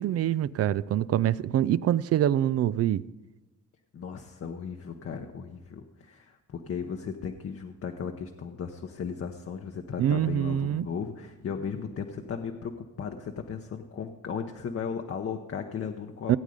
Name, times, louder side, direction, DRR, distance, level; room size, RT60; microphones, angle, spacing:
voice 1, 0.0-3.0 10.0-10.9 16.3-16.4, right 11 dB, 55° right, 0.4 m, -25 dB
voice 2, 3.9-16.4, left 6 dB, 50° left, 0.9 m, -36 dB
17.0 x 8.2 x 5.1 m
cardioid pair, 90°, 30 cm